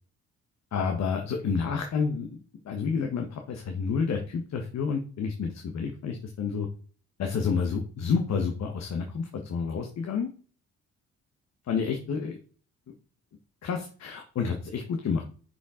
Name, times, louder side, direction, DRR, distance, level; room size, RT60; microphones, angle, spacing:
voice 1, 0.7-2.4 2.6-6.7 7.2-10.3 11.7-12.4 13.6-15.2, left 5 dB, 60° left, 3 dB, 1.4 m, -29 dB
6.5 x 5.3 x 5.0 m, 0.40 s
cardioid pair, 90°, 30 cm